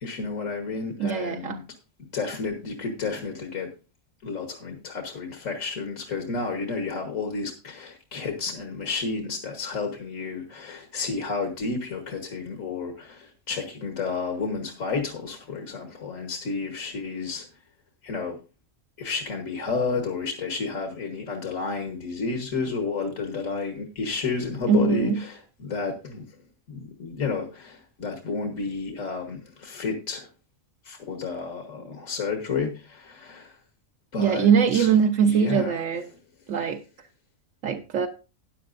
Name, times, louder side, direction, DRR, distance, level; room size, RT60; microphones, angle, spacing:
voice 1, 0.0-1.6 2.1-3.7 4.2-17.5 18.0-18.4 19.0-26.3 26.7-30.3 30.9-33.6 34.1-34.9 35.2-35.8, left 4 dB, 85° left, 1.8 m, -31 dB
voice 2, 1.0-1.6 24.7-25.2 34.2-36.0 36.5-36.8 37.6-38.1, right 7 dB, 80° right, 1.2 m, -22 dB
14.0 x 9.6 x 2.6 m
omnidirectional pair, 1.3 m